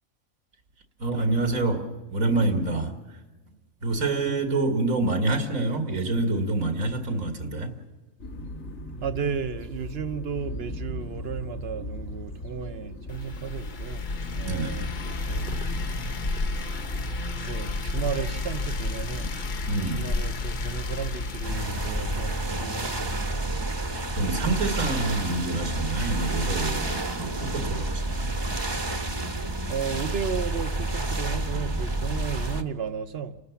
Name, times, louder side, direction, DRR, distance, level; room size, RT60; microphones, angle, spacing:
voice 1, 1.0-3.2 3.8-7.7 14.4-14.9 19.7-20.0 24.2-28.3, right 2 dB, 80° right, 2.4 m, -27 dB
sound 1, 8.2-26.5, left 1 dB, 70° left, 2.6 m, -40 dB
voice 2, 9.0-14.0 14.3-15.5 17.4-19.3 19.9-23.4 29.7-33.4, right 6 dB, 50° right, 1.0 m, -34 dB
sound 2, 13.1-22.5, left 3 dB, 40° left, 0.9 m, -31 dB
sound 3, 21.4-32.6, right 2 dB, 20° right, 1.0 m, -29 dB
29.5 x 13.5 x 7.1 m
omnidirectional pair, 1.4 m